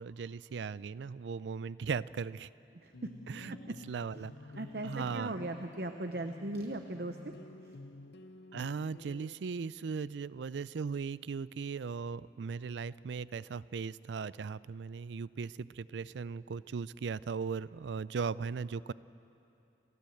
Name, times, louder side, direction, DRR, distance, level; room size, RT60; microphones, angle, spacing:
voice 1, 0.0-2.5 3.3-3.5 3.9-4.3 4.8-5.3 8.5-18.9, right 5 dB, 75° right, 19 dB, 0.4 m, -38 dB
sound 1, 2.9-9.3, left 2 dB, 70° left, 0.8 m, -50 dB
voice 2, 4.6-7.2, right 2 dB, 60° right, 7 dB, 0.8 m, -38 dB
30.0 x 13.5 x 7.8 m, 2.9 s
head